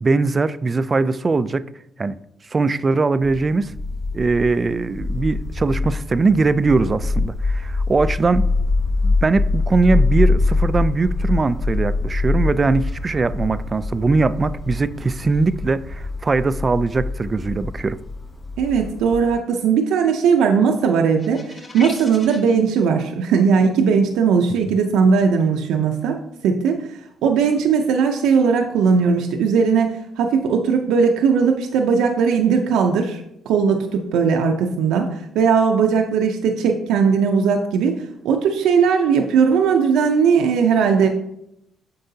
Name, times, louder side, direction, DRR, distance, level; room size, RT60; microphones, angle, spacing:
voice 1, 0.0-1.6 2.0-2.2 2.5-3.7 4.1-8.5 9.0-18.0 24.7-24.8, right 3 dB, 30° right, 0.3 m, -20 dB
sound 1, 3.2-19.3, left 3 dB, 15° left, 2.1 m, -24 dB
voice 2, 18.6-26.2 26.4-41.1, right 6 dB, 90° right, 0.6 m, -18 dB
sound 2, 21.2-22.5, left 2 dB, 40° left, 2.2 m, -36 dB
7.7 x 5.4 x 2.7 m
cardioid pair, 90°, 0 cm